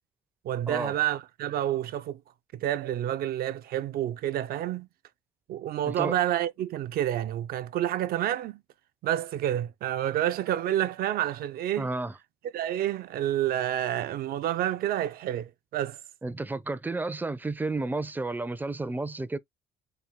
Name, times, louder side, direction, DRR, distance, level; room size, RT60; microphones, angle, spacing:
voice 1, 0.4-2.2 2.5-4.9 5.5-8.6 9.0-11.9 12.5-16.0, right 12 dB, 65° right, 0.5 m, -29 dB
voice 2, 5.8-6.2 11.8-12.2 16.2-19.4, right 2 dB, 10° right, 0.4 m, -31 dB
4.2 x 2.3 x 3.5 m
cardioid pair, 110°, 17 cm